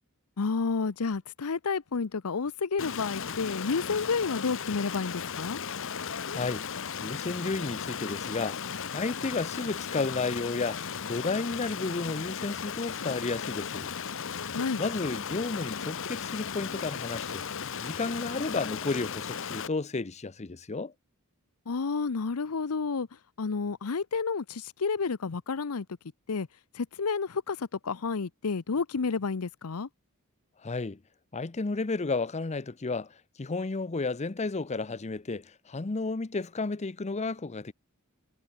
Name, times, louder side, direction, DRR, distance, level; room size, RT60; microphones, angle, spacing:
voice 1, 0.4-5.6 14.5-14.8 21.7-23.1 23.4-25.9 26.3-26.5 26.7-29.9, left 4 dB, 90° left, 0.7 m, -30 dB
Stream, 2.8-19.7, left 7 dB, 65° left, 1.1 m, -36 dB
voice 2, 6.3-6.7 7.0-8.6 8.9-13.9 14.8-17.4 17.8-20.9 30.6-31.0 31.3-37.7, left 3 dB, 30° left, 0.7 m, -32 dB
head